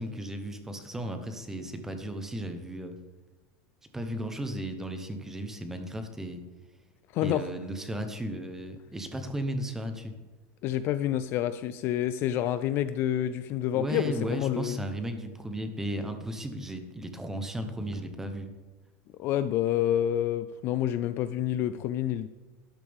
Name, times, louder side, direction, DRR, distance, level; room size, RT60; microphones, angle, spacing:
voice 1, 0.0-3.0 3.9-6.4 7.2-10.1 13.7-18.5, right 1 dB, 5° right, 7 dB, 0.8 m, -35 dB
voice 2, 7.1-7.5 10.6-14.8 19.2-22.3, left 11 dB, 35° left, 12 dB, 0.3 m, -28 dB
12.0 x 12.0 x 3.5 m, 1.3 s
supercardioid pair, 175°, 7 cm